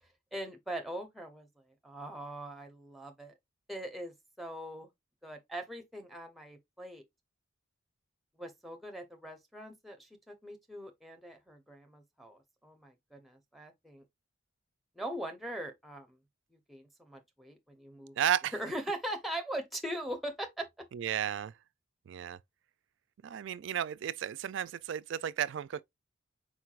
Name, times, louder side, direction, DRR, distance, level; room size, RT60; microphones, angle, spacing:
voice 1, 0.3-1.5 1.8-3.3 3.7-4.9 5.2-7.0 8.4-14.0 15.0-16.2 16.7-18.1 18.5-20.8, right 1 dB, ahead, 0.7 m, -41 dB
voice 2, 18.2-18.5 20.9-21.5 22.1-22.4 23.2-25.8, right 9 dB, 65° right, 0.3 m, -33 dB
4.5 x 4.5 x 2.4 m
head